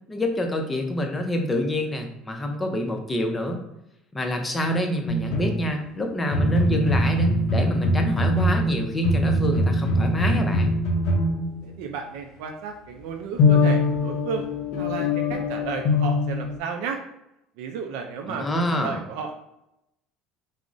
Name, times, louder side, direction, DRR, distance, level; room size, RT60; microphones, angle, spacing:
voice 1, 0.1-3.6 4.1-10.8 18.3-19.0, left 1 dB, 15° left, 3 dB, 0.5 m, -27 dB
sound 1, 5.1-5.9 6.3-12.0 13.4-16.6, left 1 dB, 70° left, 0.4 m, -23 dB
voice 2, 11.6-14.4 14.8-17.0 17.6-19.4, right 5 dB, 80° right, 3 dB, 0.3 m, -33 dB
3.6 x 2.0 x 2.4 m, 0.84 s
supercardioid pair, 110°, 0 cm